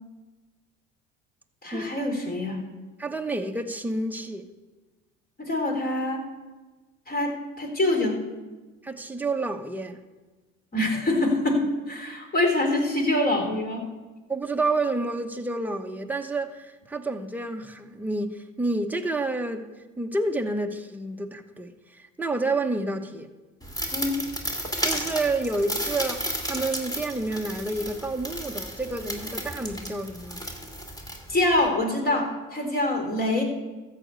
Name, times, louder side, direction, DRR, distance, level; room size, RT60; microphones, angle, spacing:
voice 1, 1.6-2.6 5.4-6.2 7.1-8.2 10.7-13.9 23.9-24.2 31.3-33.4, left 1 dB, 25° left, 3.2 m, -25 dB
voice 2, 3.0-4.5 8.8-10.0 14.3-19.7 20.0-23.3 24.8-30.4, right 2 dB, 5° right, 1.0 m, -29 dB
sound 1, 23.6-31.7, equal, 10° left, 2.3 m, -33 dB
13.5 x 5.1 x 8.2 m
supercardioid pair, 85°, 33 cm